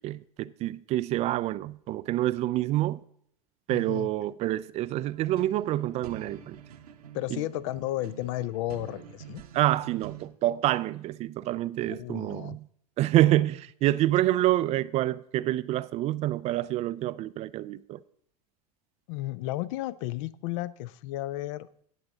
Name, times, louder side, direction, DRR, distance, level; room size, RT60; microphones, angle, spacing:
voice 1, 0.0-3.0 3.7-6.6 7.3-7.4 9.5-12.7 13.0-18.0, right 15 dB, 35° right, 0.3 m, -27 dB
voice 2, 3.7-4.1 7.1-9.4 11.9-12.6 19.1-21.7, left 15 dB, 50° left, 0.5 m, -33 dB
sound 1, 5.0-10.3, right 8 dB, 70° right, 1.1 m, -47 dB
17.5 x 6.9 x 3.7 m
figure-of-eight pair, 80°, 20 cm